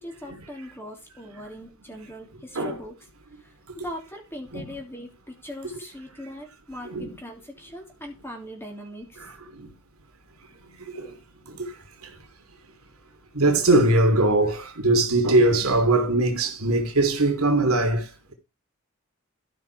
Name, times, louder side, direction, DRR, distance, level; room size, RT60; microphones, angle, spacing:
voice 1, 0.0-3.0 3.4-9.2, equal, 10° left, 3.1 m, -40 dB
voice 2, 9.2-9.7 10.9-11.1 11.5-11.7 13.3-18.3, right 2 dB, 90° right, 3.0 m, -21 dB
13.5 x 5.7 x 4.6 m
head